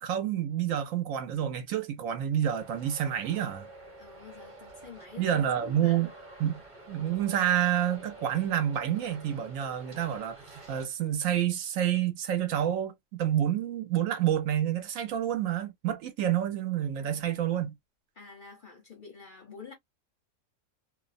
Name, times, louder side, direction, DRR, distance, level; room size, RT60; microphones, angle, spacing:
voice 1, 0.0-3.7 5.2-6.1 6.4-6.6 6.9-12.9 13.2-17.8, right 10 dB, 75° right, 1.0 m, -28 dB
Traffic noise roadway noise, 2.6-10.8, right 2 dB, 25° right, 0.9 m, -49 dB
voice 2, 4.0-6.0 17.0-17.2 18.2-19.7, left 5 dB, 50° left, 0.6 m, -48 dB
2.6 x 2.1 x 2.4 m
omnidirectional pair, 1.5 m